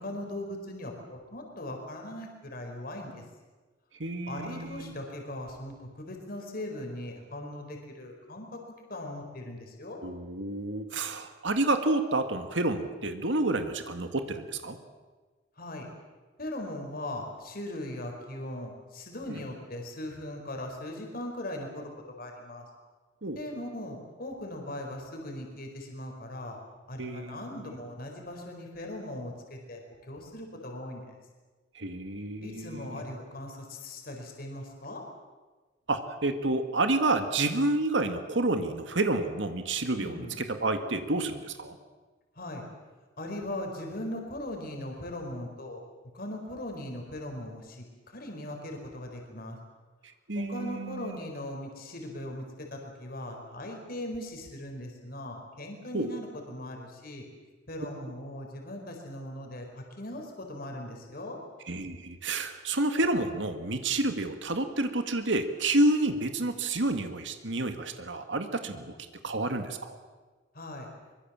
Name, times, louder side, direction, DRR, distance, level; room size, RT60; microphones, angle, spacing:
voice 1, 0.0-3.2 4.3-8.6 8.9-10.0 15.6-15.9 16.4-21.9 22.2-22.6 23.3-26.6 26.9-31.2 32.4-35.0 39.9-40.4 42.3-42.6 43.2-45.8 46.1-49.6 50.3-57.2 57.7-61.4 68.6-68.9 70.5-70.9, left 1 dB, 55° left, 2 dB, 4.7 m, -39 dB
voice 2, 4.0-5.0 10.0-14.8 19.3-19.4 23.2-23.4 27.0-27.8 31.7-33.2 35.9-41.8 50.3-51.2 55.9-56.1 61.7-68.9 69.2-70.0, right 2 dB, 90° right, 7 dB, 2.0 m, -29 dB
23.5 x 22.5 x 7.5 m, 1.3 s
head